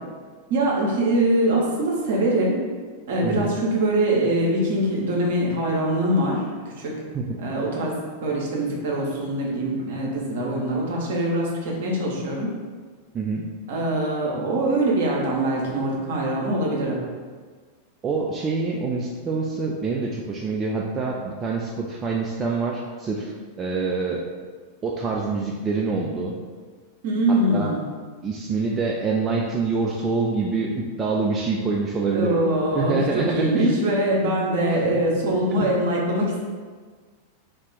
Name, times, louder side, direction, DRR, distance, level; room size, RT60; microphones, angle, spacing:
voice 1, 0.5-2.6 3.1-6.9 7.4-7.9 8.2-12.5 13.7-17.0 27.0-27.8 32.1-36.4, right 1 dB, 55° right, -2 dB, 0.7 m, -23 dB
voice 2, 3.2-3.5 7.1-7.4 13.1-13.5 18.0-24.2 24.8-26.4 27.3-27.7 28.2-32.4 32.7-33.8 34.6-35.1 35.6-35.7, right 4 dB, 20° right, -2 dB, 0.3 m, -26 dB
2.7 x 2.3 x 3.8 m, 1.5 s
figure-of-eight pair, 90°, 0 cm